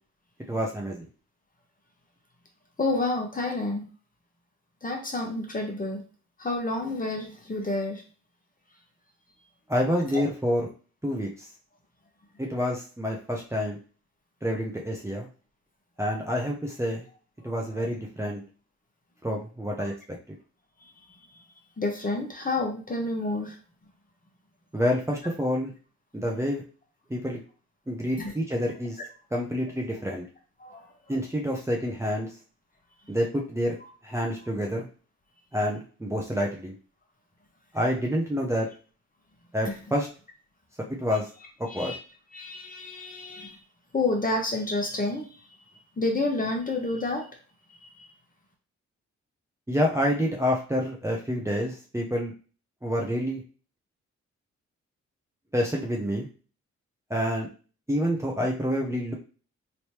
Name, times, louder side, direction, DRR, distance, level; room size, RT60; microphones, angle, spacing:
voice 1, 0.5-1.1 9.7-10.7 11.0-11.3 12.4-13.8 14.4-15.3 16.0-17.0 17.4-18.4 19.2-19.9 24.7-25.7 26.1-26.6 27.1-27.4 27.9-29.0 29.3-30.2 31.1-32.3 33.1-33.8 34.0-34.9 35.5-36.7 37.7-38.7 39.5-40.1 41.0-41.3 41.7-41.9 49.7-52.3 52.8-53.4 55.5-56.3 57.1-57.5 57.9-59.1, equal, 10° right, -2 dB, 0.8 m, -28 dB
voice 2, 2.8-3.8 4.8-6.0 6.4-8.0 10.1-10.2 17.8-17.9 19.8-19.9 21.8-23.6 28.2-28.3 30.6-30.9 33.8-33.9 39.6-39.7 41.7-42.0 42.3-43.6 43.9-45.5 46.0-47.3 47.8-48.1, left 2 dB, 30° left, 2 dB, 1.2 m, -29 dB
3.2 x 3.0 x 2.9 m, 0.37 s
supercardioid pair, 50°, 30 cm